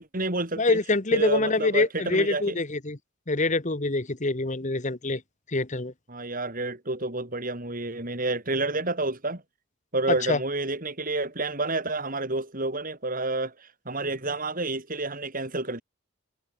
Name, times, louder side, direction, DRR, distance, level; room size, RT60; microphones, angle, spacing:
voice 1, 0.0-0.8 1.1-2.6 6.1-9.4 9.9-15.8, right 2 dB, 45° right, 4.8 m, -29 dB
voice 2, 0.6-3.0 3.3-5.2 5.5-5.9 10.1-10.4, left 2 dB, 35° left, 1.4 m, -25 dB
head